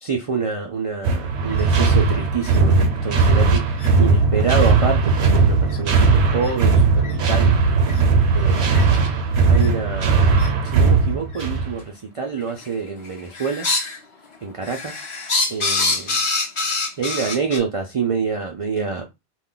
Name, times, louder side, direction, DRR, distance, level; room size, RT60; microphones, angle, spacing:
voice 1, 0.0-3.6 4.0-7.5 8.3-9.0 9.5-10.4 10.6-13.7 14.4-15.0 15.5-16.2 17.0-19.0, right 5 dB, 60° right, 0.3 m, -26 dB
sound 1, 1.0-11.8, right 4 dB, 80° right, 0.9 m, -18 dB
sound 2, 1.5-1.6 2.4-2.6 3.2-3.3 3.8-3.9 4.6-4.7 5.7-5.8 6.4-6.5 7.0-7.1 7.9-8.0 8.7-8.8 9.5-9.7 10.4-10.5 11.3-11.4 12.4-12.7 13.0-14.0 14.3-17.6, left 3 dB, 35° left, 0.5 m, -25 dB
2.4 x 2.1 x 3.6 m
omnidirectional pair, 1.1 m